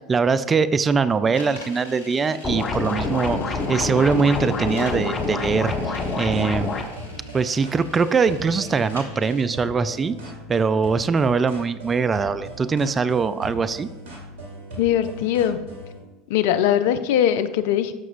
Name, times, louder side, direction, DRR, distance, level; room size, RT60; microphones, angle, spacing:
voice 1, 0.1-3.4 3.7-6.7 7.3-10.2 10.5-13.9, right 5 dB, 25° right, 14 dB, 0.4 m, -22 dB
sound 1, 1.3-9.5, left 1 dB, 85° left, 1.2 m, -44 dB
sound 2, 2.4-6.8, left 3 dB, 30° left, 1.1 m, -26 dB
sound 3, 5.7-16.0, equal, 65° right, 2.1 m, -39 dB
voice 2, 14.8-15.6 16.3-17.9, left 10 dB, 65° left, 12 dB, 0.5 m, -21 dB
13.5 x 6.0 x 2.5 m, 1.1 s
figure-of-eight pair, 80°, 0 cm